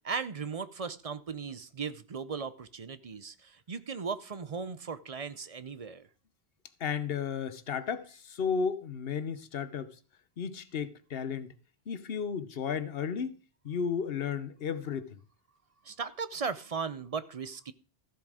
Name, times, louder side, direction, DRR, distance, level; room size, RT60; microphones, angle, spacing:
voice 1, 0.0-6.1 15.8-17.7, right 5 dB, 40° right, 0.6 m, -37 dB
voice 2, 6.8-9.9 10.4-11.5 11.9-13.4 13.6-15.2, left 6 dB, 65° left, 1.1 m, -33 dB
14.0 x 7.1 x 4.9 m
omnidirectional pair, 1.1 m